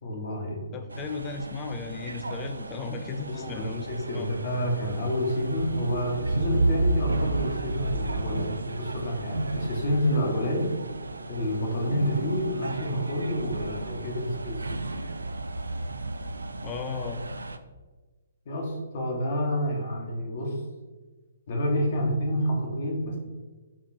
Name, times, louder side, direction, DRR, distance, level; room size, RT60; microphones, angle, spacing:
voice 1, 0.0-0.6 3.3-10.7 11.3-14.6 18.4-20.6 21.5-23.2, equal, 50° left, 0 dB, 1.3 m, -29 dB
voice 2, 0.7-4.3 16.6-17.2, left 4 dB, 25° left, 6 dB, 0.4 m, -35 dB
sound 1, 0.9-17.6, right 2 dB, 85° right, 0.3 m, -32 dB
4.3 x 2.9 x 4.3 m, 1.3 s
figure-of-eight pair, 130°, 0 cm